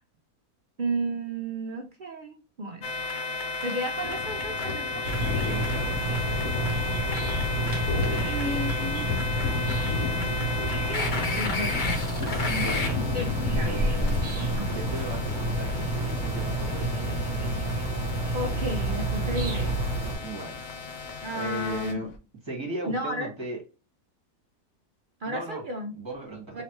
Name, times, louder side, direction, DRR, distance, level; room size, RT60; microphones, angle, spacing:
voice 1, 0.8-2.8 3.6-5.0 8.3-9.6 10.9-12.0 13.1-13.7 14.6-14.7 18.3-19.7 21.2-22.1 22.9-23.3 25.2-25.9 26.5-26.6, right 1 dB, 70° right, 0.4 m, -33 dB
sound 1, 2.8-21.9, left 3 dB, 45° left, 0.6 m, -34 dB
sound 2, 4.0-22.2, left 5 dB, 65° left, 1.1 m, -36 dB
sound 3, 5.0-20.2, right 1 dB, 35° right, 0.9 m, -29 dB
voice 2, 5.3-6.6 8.1-8.5 12.5-13.0 13.5-17.4 20.1-20.7 21.3-22.1 22.4-23.6 25.2-25.6 25.9-26.6, right 3 dB, 20° right, 1.5 m, -37 dB
3.8 x 3.2 x 2.9 m
omnidirectional pair, 1.6 m